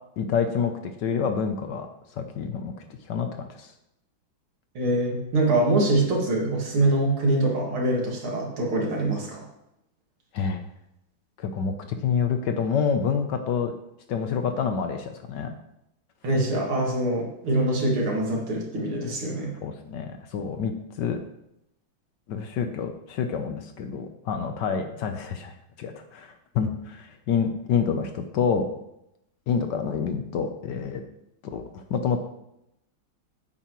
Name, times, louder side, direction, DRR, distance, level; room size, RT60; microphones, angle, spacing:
voice 1, 0.2-1.9 2.1-2.7 3.1-3.7 6.0-6.1 10.3-10.6 11.4-11.7 12.0-13.7 14.1-15.5 19.6-21.2 22.3-25.5 25.8-28.7 29.5-31.0 31.4-32.2, left 6 dB, 65° left, 6 dB, 1.3 m, -27 dB
voice 2, 4.7-9.5 16.2-19.5, right 2 dB, 90° right, -2 dB, 2.9 m, -24 dB
9.2 x 8.5 x 3.1 m, 0.82 s
omnidirectional pair, 2.3 m